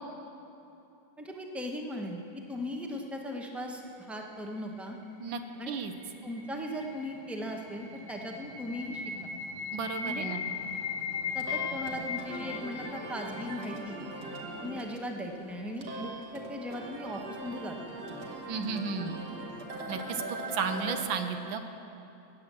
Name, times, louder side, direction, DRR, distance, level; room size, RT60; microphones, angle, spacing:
voice 1, 1.2-2.2 2.5-5.0 5.6-5.8 6.2-9.1 10.0-10.3 11.3-14.0 14.6-17.8, left 1 dB, ahead, 1 dB, 0.5 m, -38 dB
sound 1, 5.6-14.5, left 6 dB, 50° left, 1.4 m, -38 dB
voice 2, 9.7-10.4 18.5-19.2 19.9-20.2 20.5-21.6, right 5 dB, 85° right, 7 dB, 1.6 m, -33 dB
sound 2, 11.1-21.0, right 1 dB, 60° right, 1.8 m, -41 dB
14.5 x 9.0 x 7.5 m, 2.9 s
omnidirectional pair, 2.1 m